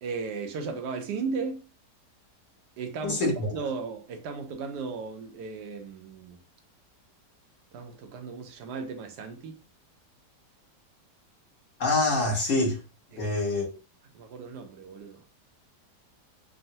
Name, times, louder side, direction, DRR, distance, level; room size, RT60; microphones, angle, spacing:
voice 1, 0.0-1.6 2.8-3.2 3.5-6.4 7.7-9.6 13.1-13.4 14.1-15.2, right 5 dB, 80° right, 1.1 m, -36 dB
voice 2, 3.0-3.5 11.8-12.8 13.2-13.7, left 2 dB, 55° left, 1.1 m, -25 dB
3.6 x 2.0 x 2.7 m
omnidirectional pair, 1.8 m